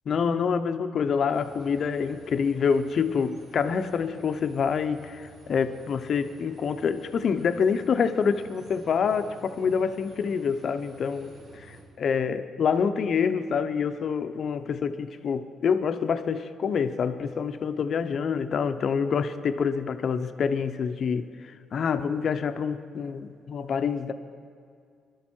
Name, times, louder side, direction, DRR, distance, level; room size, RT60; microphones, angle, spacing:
voice 1, 0.1-24.1, left 6 dB, 55° left, 9 dB, 0.8 m, -27 dB
sound 1, 1.3-11.8, right 2 dB, 80° right, 4.3 m, -52 dB
21.5 x 12.5 x 4.5 m, 2.3 s
cardioid pair, 90°, 0 cm